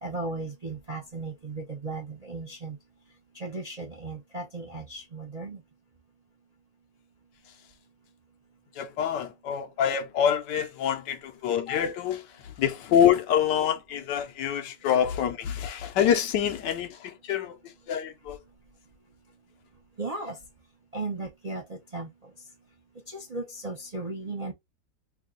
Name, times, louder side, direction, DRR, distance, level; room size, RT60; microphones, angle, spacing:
voice 1, 0.0-2.8 3.3-5.6 20.0-20.4 20.9-22.1 23.1-24.5, right 3 dB, 40° right, 0.5 m, -36 dB
voice 2, 8.8-17.6 17.9-18.4, left 9 dB, 75° left, 1.3 m, -26 dB
3.5 x 2.3 x 3.7 m
omnidirectional pair, 2.0 m